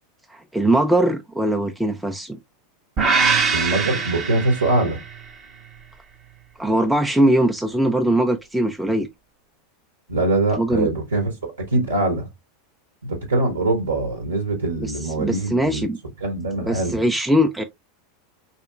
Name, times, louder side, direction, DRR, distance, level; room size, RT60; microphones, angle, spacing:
voice 1, 0.3-2.4 6.6-9.1 10.6-10.9 14.8-14.9 15.2-16.0 16.7-17.6, right 1 dB, 5° right, 0.4 m, -21 dB
sound 1, 3.0-5.2, right 5 dB, 30° right, 0.8 m, -22 dB
voice 2, 3.5-5.0 10.1-12.3 13.0-15.9 16.2-17.0, right 2 dB, 75° right, 0.9 m, -23 dB
4.1 x 2.8 x 2.3 m
figure-of-eight pair, 85°, 0 cm